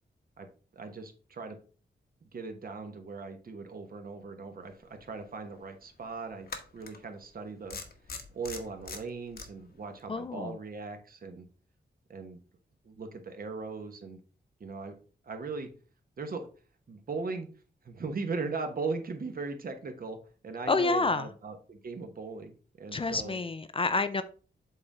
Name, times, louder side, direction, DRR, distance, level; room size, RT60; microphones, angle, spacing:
voice 1, 0.7-1.6 2.3-6.5 6.7-7.8 8.3-11.5 12.1-12.4 12.8-14.2 14.6-14.9 15.3-15.7 16.2-16.5 16.9-17.5 17.8-20.2 20.4-23.4, right 4 dB, 55° right, 6 dB, 1.1 m, -38 dB
sound 1, 5.1-5.2 6.5-7.0 7.7-9.5, left 4 dB, 60° left, 1.1 m, -41 dB
voice 2, 10.1-10.6 20.7-21.3 22.9-24.2, left 3 dB, 30° left, 11 dB, 0.4 m, -28 dB
7.8 x 3.7 x 4.1 m, 0.39 s
wide cardioid pair, 155°, 18 cm